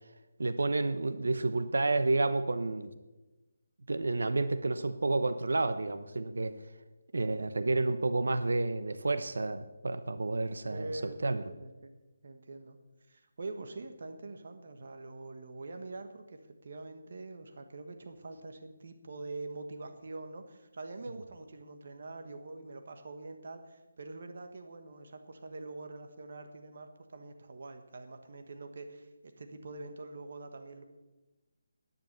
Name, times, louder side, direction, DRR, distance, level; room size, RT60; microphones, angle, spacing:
voice 1, 0.4-2.9 3.9-6.5 7.1-10.9 11.2-11.4, right 2 dB, 85° right, 11 dB, 0.9 m, -30 dB
voice 2, 10.7-11.9 12.2-12.8 13.1-29.1 29.4-30.8, right 3 dB, 50° right, 7 dB, 1.4 m, -44 dB
10.5 x 10.0 x 6.7 m, 1.1 s
hypercardioid pair, 175°, 0 cm